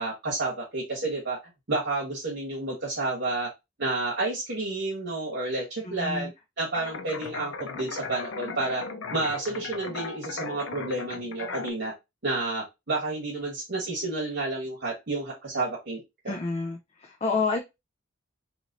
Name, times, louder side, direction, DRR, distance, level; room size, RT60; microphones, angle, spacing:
voice 1, 0.0-1.4 1.7-3.5 3.8-6.3 6.6-8.8 9.1-11.9 12.2-16.4, right 2 dB, 55° right, -4 dB, 1.3 m, -30 dB
voice 2, 5.8-6.3 16.3-17.6, left 4 dB, 30° left, 3 dB, 0.5 m, -29 dB
sound 1, 6.7-11.7, left 4 dB, 80° left, 0.6 m, -37 dB
3.0 x 3.0 x 3.9 m, 0.22 s
head